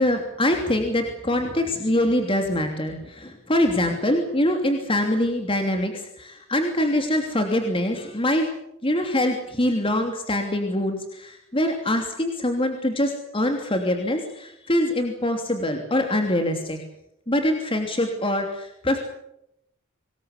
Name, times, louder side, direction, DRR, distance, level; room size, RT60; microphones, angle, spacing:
voice 1, 0.0-8.5 8.8-16.8 17.3-19.0, left 1 dB, 25° left, 4 dB, 3.0 m, -24 dB
25.0 x 21.0 x 8.3 m, 0.80 s
head